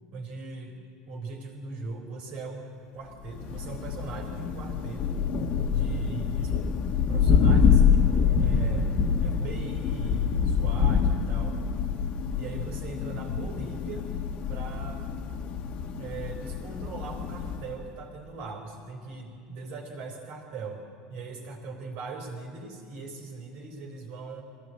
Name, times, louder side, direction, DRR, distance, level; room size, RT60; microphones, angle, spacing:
voice 1, 0.1-0.8 1.1-2.7 2.9-5.2 5.7-6.5 7.1-8.9 9.2-11.6 12.4-14.1 14.5-15.0 16.0-20.8 21.1-24.4, right 3 dB, 65° right, 1 dB, 3.6 m, -40 dB
Thunder, 3.2-17.8, left 6 dB, 55° left, 1.4 m, -26 dB
22.0 x 16.5 x 7.6 m, 2.3 s
hypercardioid pair, 90°, 2 cm